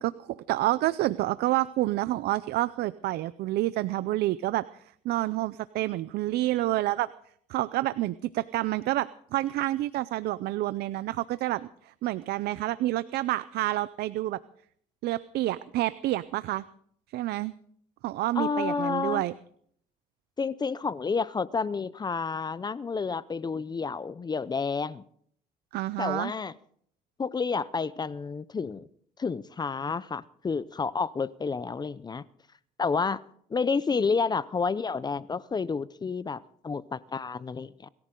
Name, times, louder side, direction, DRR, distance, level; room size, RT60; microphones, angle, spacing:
voice 1, 0.0-7.1 7.5-14.4 15.0-16.6 17.1-17.5 18.0-19.3 25.7-26.3, right 16 dB, 75° right, 0.6 m, -28 dB
voice 2, 18.4-19.2 20.4-25.0 26.0-26.5 27.2-28.9 29.2-32.2 32.8-33.2 33.5-37.9, left 5 dB, 25° left, 0.6 m, -30 dB
23.5 x 14.5 x 3.8 m
cardioid pair, 110°, 17 cm